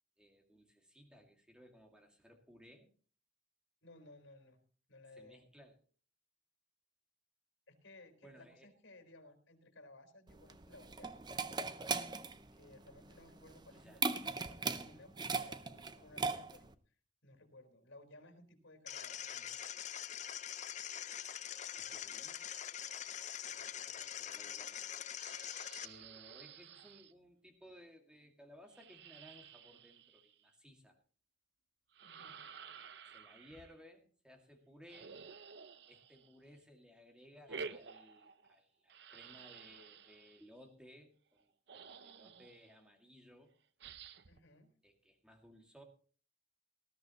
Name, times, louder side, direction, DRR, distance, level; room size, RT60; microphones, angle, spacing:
voice 1, 0.2-2.9 5.2-5.8 8.2-8.7 13.7-14.0 21.8-22.4 23.5-24.8 25.8-31.0 33.1-35.2 35.9-43.6 44.8-45.8, equal, 5° right, 3 dB, 2.1 m, -60 dB
voice 2, 3.8-4.6 4.9-5.5 7.7-11.2 12.5-16.7 17.2-19.6 32.0-32.4 44.3-44.7, left 2 dB, 75° left, 6 dB, 4.2 m, -59 dB
sound 1, 10.3-16.7, right 4 dB, 20° right, 0.6 m, -39 dB
sound 2, 18.9-25.9, left 10 dB, 35° left, 0.6 m, -44 dB
sound 3, 25.2-27.1 28.7-30.5 31.9-33.7 34.9-36.5 37.4-38.6 38.9-40.5 41.4-41.5 41.7-42.7 43.8-44.4, right 5 dB, 60° right, 0.6 m, -52 dB
19.0 x 13.5 x 3.0 m, 0.41 s
head